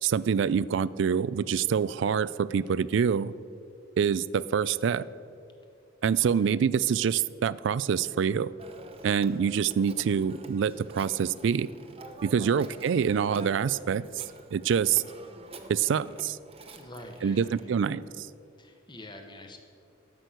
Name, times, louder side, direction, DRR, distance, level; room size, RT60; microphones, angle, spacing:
voice 1, 0.0-3.3 4.0-5.1 6.0-8.5 9.0-11.7 12.2-14.0 14.5-15.0 15.7-16.4 17.2-18.3, right 7 dB, 65° right, 19 dB, 0.3 m, -26 dB
voice 2, 6.2-6.6 8.9-9.1 12.3-12.7 16.7-17.8 18.6-19.6, left 1 dB, 25° left, 4 dB, 1.2 m, -47 dB
Telephone, 8.6-17.7, right 2 dB, 30° right, 0.8 m, -48 dB
12.5 x 6.1 x 8.0 m, 2.5 s
head